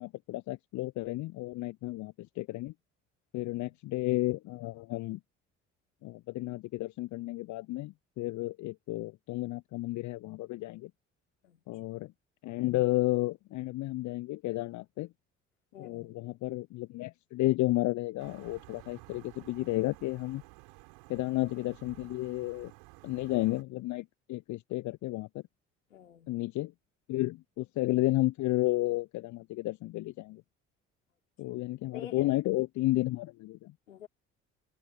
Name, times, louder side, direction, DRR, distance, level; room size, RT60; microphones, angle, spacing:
voice 1, 0.0-2.7 3.3-5.2 6.0-10.9 11.7-12.1 12.4-15.1 15.8-20.4 21.1-22.7 23.0-25.4 26.3-26.7 27.1-30.4 31.4-33.7, left 18 dB, 50° left, 0.7 m, -32 dB
voice 2, 3.3-3.8 11.4-11.8 15.7-16.2 25.9-26.3 31.5-31.6 31.9-32.3 33.9-34.1, left 8 dB, 80° left, 4.1 m, -49 dB
sound 1, 18.2-23.6, right 31 dB, 65° right, 7.3 m, -54 dB
figure-of-eight pair, 50°, 38 cm